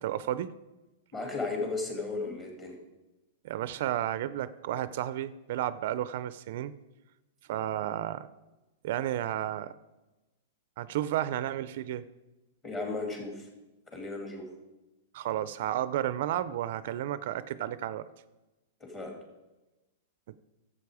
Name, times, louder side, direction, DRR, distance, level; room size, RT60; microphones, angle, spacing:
voice 1, 0.0-0.5 3.4-6.7 7.5-8.3 8.8-9.7 10.8-12.1 15.1-18.1, right 12 dB, 60° right, 16 dB, 0.4 m, -32 dB
voice 2, 1.1-2.8 12.6-13.5 13.9-14.5 18.8-19.2, left 3 dB, 20° left, 1 dB, 2.4 m, -35 dB
11.5 x 7.5 x 4.8 m, 1.1 s
hypercardioid pair, 145°, 0 cm